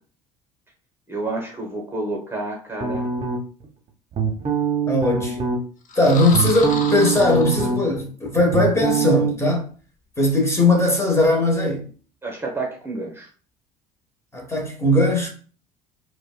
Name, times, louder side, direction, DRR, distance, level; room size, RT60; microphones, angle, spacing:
voice 1, 1.1-3.1 12.2-13.3, right 2 dB, 10° right, 1.0 m, -29 dB
sound 1, 2.8-3.6 4.1-5.6 6.1-9.3, right 6 dB, 35° right, 0.9 m, -23 dB
voice 2, 4.9-5.4 6.0-9.7 10.2-11.9 14.3-15.3, left 1 dB, 15° left, 1.2 m, -19 dB
sound 2, 5.8-8.2, left 4 dB, 40° left, 0.8 m, -33 dB
4.9 x 2.2 x 2.2 m
hypercardioid pair, 70°, 19 cm